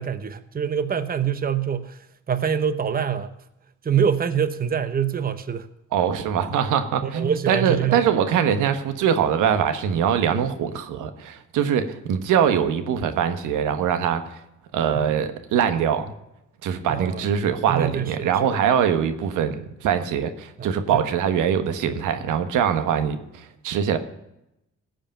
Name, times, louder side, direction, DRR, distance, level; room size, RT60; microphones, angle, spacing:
voice 1, 0.0-2.0 2.3-3.4 3.8-5.7 7.0-8.1 14.9-15.1 16.9-17.2 17.7-18.6 20.6-21.0, right 7 dB, 30° right, 11 dB, 0.9 m, -25 dB
voice 2, 5.9-14.4 14.7-16.1 16.6-24.0, right 8 dB, 90° right, 9 dB, 1.3 m, -23 dB
15.5 x 5.2 x 8.8 m, 0.85 s
cardioid pair, 90°, 30 cm